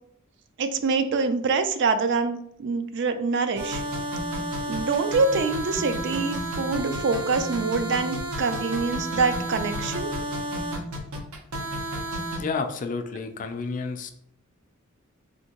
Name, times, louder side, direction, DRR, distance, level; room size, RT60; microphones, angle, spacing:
voice 1, 0.6-3.8 4.7-10.1, right 4 dB, 55° right, 8 dB, 0.4 m, -25 dB
sound 1, 3.6-12.4, right 1 dB, 85° right, 0.7 m, -31 dB
voice 2, 12.4-14.1, left 4 dB, 40° left, 6 dB, 0.3 m, -30 dB
3.4 x 2.7 x 2.9 m, 0.70 s
head